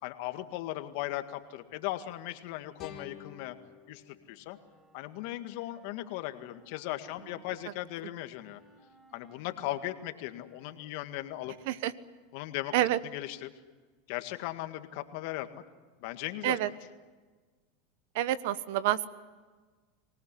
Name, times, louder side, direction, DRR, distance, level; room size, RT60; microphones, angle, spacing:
voice 1, 0.0-3.6 3.9-4.6 4.9-8.6 9.1-11.6 12.3-12.7 13.0-13.5 14.1-15.6 16.0-16.8, left 15 dB, 65° left, 8 dB, 1.9 m, -38 dB
sound 1, 2.8-5.8, left 7 dB, 40° left, 3.7 m, -52 dB
Wind instrument woodwind instrument, 4.4-7.7 8.3-11.1, equal, 15° right, 5.8 m, -62 dB
voice 2, 18.1-19.1, right 13 dB, 65° right, 16 dB, 1.1 m, -28 dB
25.5 x 19.0 x 10.0 m, 1.4 s
hypercardioid pair, 100°, 0 cm